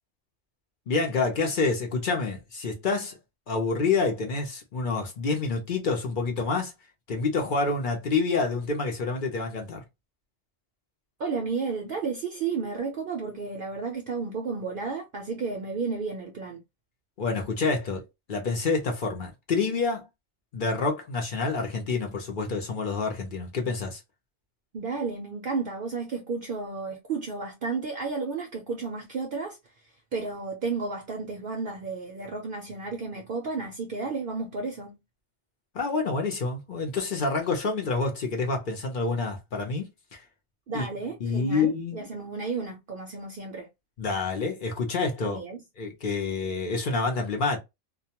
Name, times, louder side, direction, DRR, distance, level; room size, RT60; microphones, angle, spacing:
voice 1, 0.9-3.2 3.5-6.7 7.1-9.8 17.2-20.1 20.5-24.0 35.7-40.2 40.7-40.9 41.2-42.0 44.0-45.4 45.8-47.6, left 4 dB, 55° left, 0.7 m, -28 dB
voice 2, 11.2-16.6 24.7-29.6 30.1-35.0 40.7-43.7 45.2-45.6, right 4 dB, 60° right, 0.6 m, -32 dB
2.2 x 2.1 x 2.8 m
omnidirectional pair, 1.2 m